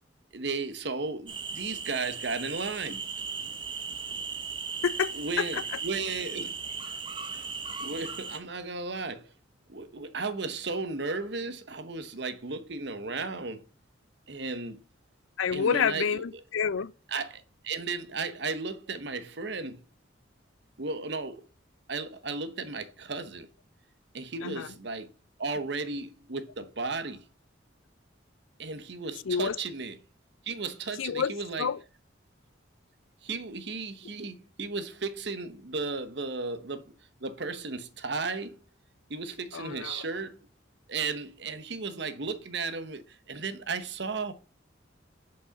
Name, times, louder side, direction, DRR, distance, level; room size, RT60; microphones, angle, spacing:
voice 1, 0.3-3.0 5.1-6.6 6.9-7.0 7.3-7.5 7.8-9.3 9.7-13.6 14.3-14.8 15.5-16.2 17.1-19.8 20.8-21.4 21.9-23.5 24.1-25.1 25.4-27.2 28.6-30.0 30.4-31.7 33.2-36.9 37.2-38.6 39.1-40.4 40.9-44.3, right 4 dB, 60° right, 1.0 m, -35 dB
sound 1, 1.3-8.4, right 5 dB, 25° right, 1.2 m, -37 dB
voice 2, 4.8-5.6 15.4-16.9 24.4-24.7 29.2-29.6 31.0-31.8 39.5-40.0, left 6 dB, 90° left, 0.5 m, -29 dB
6.1 x 5.6 x 6.9 m
head